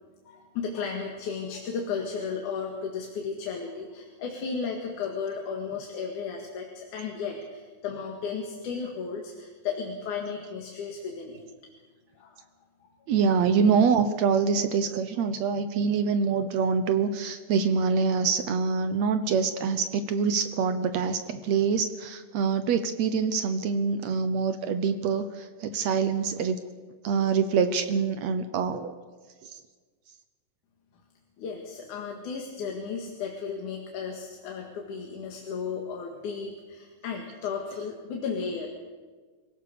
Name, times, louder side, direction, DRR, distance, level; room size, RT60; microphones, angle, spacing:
voice 1, 0.3-11.5 12.2-12.4 12.8-12.9 31.4-38.7, left 5 dB, 60° left, 1 dB, 3.1 m, -34 dB
voice 2, 13.1-26.6 27.0-28.9 29.4-29.6, right 5 dB, 75° right, 9 dB, 1.6 m, -25 dB
26.0 x 17.5 x 6.8 m, 1.4 s
omnidirectional pair, 4.3 m